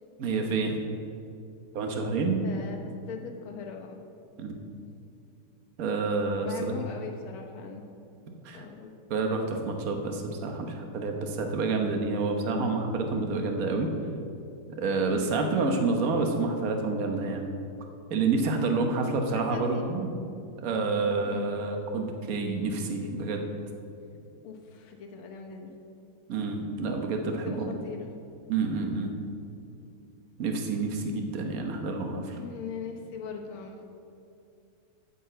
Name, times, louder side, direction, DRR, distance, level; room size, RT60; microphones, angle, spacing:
voice 1, 0.2-0.8 1.7-2.4 4.4-4.6 5.8-6.7 8.4-8.6 9.1-13.9 14.7-17.5 18.1-20.1 20.6-23.4 26.3-27.7 28.5-29.1 30.4-32.4, right 3 dB, 50° right, 3 dB, 1.2 m, -28 dB
voice 2, 2.4-2.8 3.1-4.0 6.4-7.8 8.5-8.9 19.3-19.9 21.2-21.5 24.4-25.7 27.3-28.1 31.9-32.0 32.3-33.8, left 6 dB, 75° left, 3 dB, 1.8 m, -40 dB
9.1 x 5.7 x 7.8 m, 2.6 s
omnidirectional pair, 2.4 m